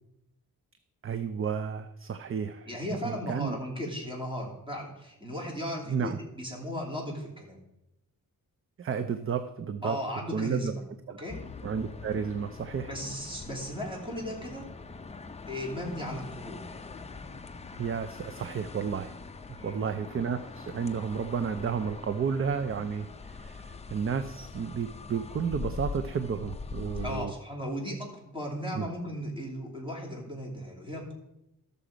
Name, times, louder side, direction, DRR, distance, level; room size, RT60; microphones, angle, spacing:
voice 1, 1.0-2.7 3.0-3.6 5.9-6.2 8.8-10.0 10.3-10.7 11.1-11.2 11.6-12.9 17.8-19.1 19.6-27.3 28.7-28.9, right 6 dB, 40° right, 10 dB, 0.5 m, -32 dB
voice 2, 2.6-7.6 9.8-10.8 11.2-11.4 12.8-14.7 15.5-16.6 19.5-19.9 27.0-31.1, equal, 15° right, -2 dB, 3.0 m, -36 dB
sound 1, 11.3-27.3, left 4 dB, 20° left, 0.5 m, -43 dB
13.5 x 6.9 x 5.0 m, 0.86 s
wide cardioid pair, 140°, 35 cm